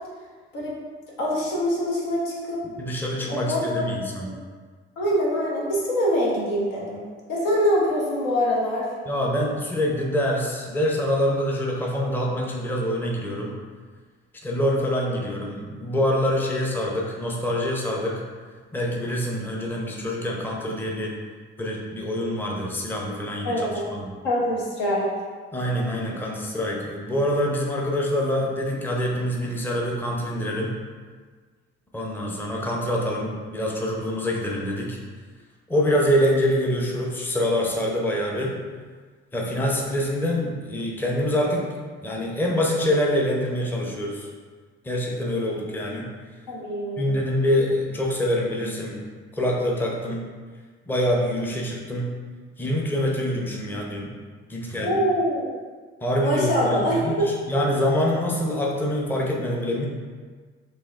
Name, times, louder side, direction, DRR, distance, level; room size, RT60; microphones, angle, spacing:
voice 1, 1.2-2.6 3.3-3.9 4.2-4.4 5.0-7.0 7.3-8.9 23.4-23.9 24.2-25.1 46.5-47.1 54.8-55.5 56.2-57.3, equal, 75° left, -4 dB, 0.9 m, -24 dB
voice 2, 2.6-4.3 9.1-13.5 14.4-18.2 18.7-21.1 21.6-24.1 25.5-30.7 31.9-35.0 35.7-38.5 39.3-41.7 42.0-44.3 44.8-46.1 47.0-49.0 49.3-50.3 50.9-52.1 52.6-54.1 54.5-55.0 56.0-59.9, equal, 5° left, -2 dB, 0.6 m, -25 dB
4.1 x 2.8 x 2.3 m, 1.5 s
hypercardioid pair, 50°, 33 cm